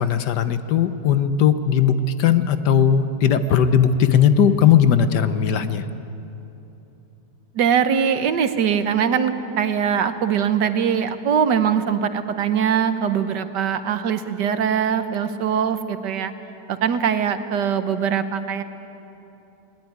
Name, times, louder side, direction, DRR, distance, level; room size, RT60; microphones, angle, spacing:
voice 1, 0.0-5.9, left 8 dB, 75° left, 11 dB, 1.5 m, -18 dB
voice 2, 7.5-16.3 16.7-18.6, right 7 dB, 80° right, 10 dB, 1.6 m, -22 dB
20.0 x 19.5 x 9.4 m, 3.0 s
omnidirectional pair, 1.8 m